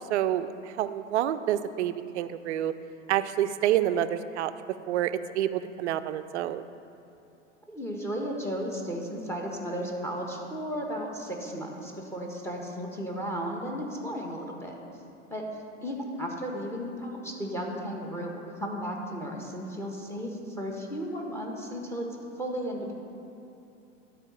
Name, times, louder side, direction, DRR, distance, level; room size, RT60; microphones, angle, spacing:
voice 1, 0.0-2.7 3.1-4.5 4.9-6.6, right 11 dB, 65° right, 12 dB, 0.5 m, -28 dB
voice 2, 7.7-14.7 15.3-15.4 15.8-22.1 22.4-22.9, equal, 5° left, 0 dB, 1.3 m, -34 dB
11.5 x 4.2 x 5.8 m, 2.8 s
figure-of-eight pair, 90°, 38 cm